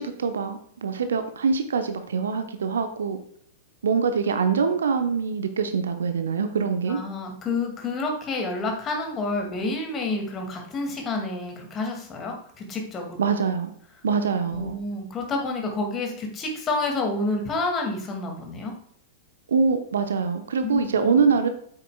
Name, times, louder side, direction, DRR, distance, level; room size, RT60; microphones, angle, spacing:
voice 1, 0.0-3.2 3.8-7.0 13.2-13.7 14.0-14.8 19.5-21.5, right 5 dB, 65° right, 9 dB, 0.8 m, -24 dB
voice 2, 6.9-13.1 14.5-18.7 20.6-21.1, left 3 dB, 25° left, 2 dB, 2.2 m, -29 dB
8.9 x 8.0 x 2.3 m, 0.64 s
figure-of-eight pair, 95°, 0 cm